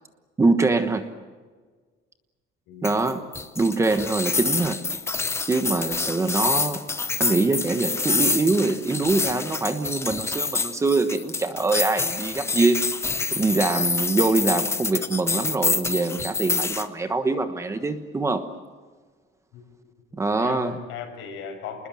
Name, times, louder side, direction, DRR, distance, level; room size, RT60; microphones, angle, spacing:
voice 1, 0.4-1.1 2.8-3.3 3.5-4.8 5.5-6.8 7.2-12.9 13.3-18.5 20.1-20.7, right 3 dB, 15° right, 9 dB, 1.2 m, -24 dB
voice 2, 2.7-3.2 19.5-19.6 20.3-21.9, left 6 dB, 75° left, 5 dB, 6.1 m, -37 dB
sound 1, 2.8-16.9, left 4 dB, 10° left, 0.8 m, -27 dB
29.0 x 20.5 x 7.7 m, 1.4 s
cardioid pair, 175°, 21 cm